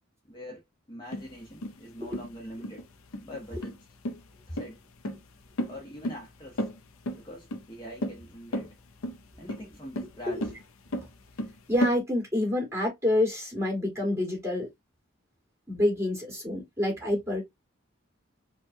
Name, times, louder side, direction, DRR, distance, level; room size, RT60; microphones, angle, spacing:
voice 1, 0.3-0.6 0.9-2.8 3.2-3.8 4.5-4.8 5.7-6.7 7.2-8.7 9.4-10.4, equal, 20° left, 0.9 m, -43 dB
sound 1, 1.1-12.0, equal, 90° left, 0.7 m, -34 dB
voice 2, 11.7-14.7 15.7-17.4, left 1 dB, 15° right, 2.2 m, -27 dB
4.4 x 2.3 x 2.7 m
head